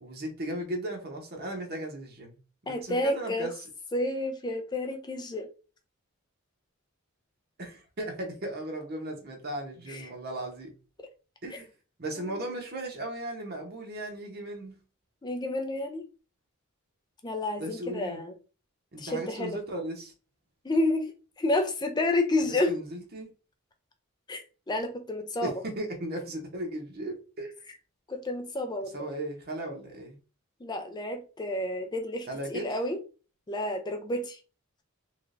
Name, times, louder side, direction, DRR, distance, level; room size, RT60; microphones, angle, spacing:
voice 1, 0.0-2.4 2.7-3.5 7.6-10.7 11.4-11.7 12.0-14.7 17.6-18.2 18.9-20.1 22.7-23.3 25.4-27.5 28.9-30.2 32.3-32.7, right 1 dB, 45° right, 0.9 m, -36 dB
voice 2, 2.7-3.5 3.9-5.5 9.9-10.1 11.0-11.1 11.5-11.6 12.1-12.4 15.2-16.1 17.2-18.3 19.0-19.6 20.6-21.1 21.4-22.7 24.3-24.4 24.7-25.5 28.1-29.1 30.6-33.0 33.5-34.4, left 1 dB, 20° left, 0.4 m, -30 dB
3.3 x 3.2 x 2.5 m
head